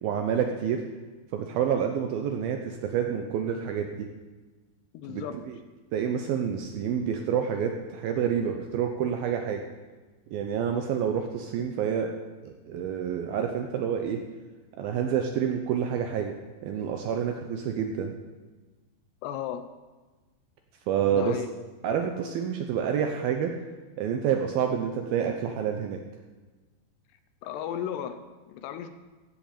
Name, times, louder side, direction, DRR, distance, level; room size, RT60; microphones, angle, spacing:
voice 1, 0.0-0.8 1.3-4.1 5.1-5.5 5.9-9.6 10.3-12.1 12.4-14.2 14.8-16.4 16.6-18.2 20.9-21.4 21.8-23.5 24.0-26.0, right 8 dB, 75° right, 4 dB, 2.2 m, -28 dB
voice 2, 4.9-5.5 19.2-19.7 21.1-21.5 27.4-28.9, left 9 dB, 80° left, 10 dB, 2.7 m, -35 dB
15.5 x 7.6 x 6.8 m, 1.3 s
omnidirectional pair, 5.1 m